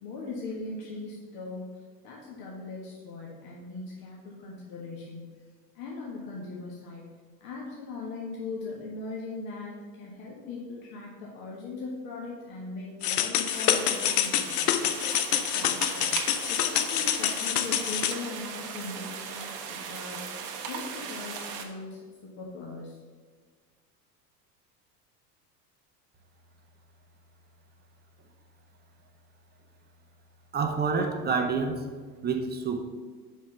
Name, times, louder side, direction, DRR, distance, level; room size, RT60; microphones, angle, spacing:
voice 1, 0.0-1.7 2.0-5.4 5.7-7.1 7.4-14.8 15.5-16.1 16.5-20.2 20.7-23.0, left 3 dB, 45° left, -4 dB, 1.5 m, -40 dB
sound 1, 13.0-18.1, left 10 dB, 65° left, 0.7 m, -27 dB
sound 2, 13.5-21.6, right 6 dB, 45° right, 1.1 m, -38 dB
voice 2, 30.5-31.9 32.2-32.8, right 5 dB, 20° right, 5 dB, 0.8 m, -28 dB
5.4 x 5.1 x 5.7 m, 1.5 s
figure-of-eight pair, 80°, 49 cm